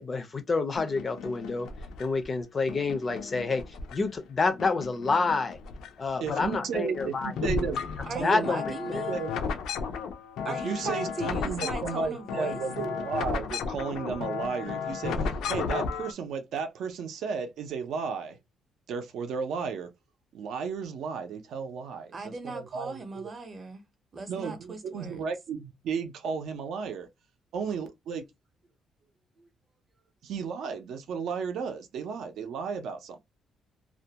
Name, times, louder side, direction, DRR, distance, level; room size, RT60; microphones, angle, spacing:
voice 1, 0.0-1.7 2.0-5.6 6.0-7.7 8.2-9.0, left 4 dB, 25° left, 0.4 m, -28 dB
sound 1, 0.8-2.2 2.7-4.3 4.6-5.9 6.2-16.1, left 5 dB, 85° left, 0.5 m, -34 dB
voice 2, 6.2-7.8 8.1-8.5 9.1-9.3 10.6-18.4 18.9-19.9 20.3-23.3 24.3-27.1 27.5-28.2 30.2-33.2, right 6 dB, 70° right, 0.5 m, -34 dB
voice 3, 8.1-9.1 10.4-12.6 22.1-23.8 24.1-25.2 29.4-29.5, right 3 dB, 25° right, 0.6 m, -37 dB
2.4 x 2.1 x 2.7 m
cardioid pair, 165°, 0 cm